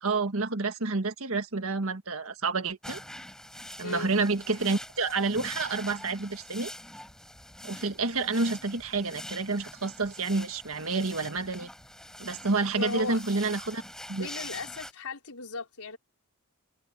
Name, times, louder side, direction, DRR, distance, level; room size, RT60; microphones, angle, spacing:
voice 1, 0.0-3.0 3.8-6.7 7.6-11.7 12.2-13.8 14.1-14.3, right 3 dB, 65° right, 1.7 m, -29 dB
sound 1, 2.8-14.9, left 1 dB, 5° left, 4.0 m, -44 dB
voice 2, 12.8-13.6 14.2-16.0, left 3 dB, 85° left, 4.6 m, -37 dB
head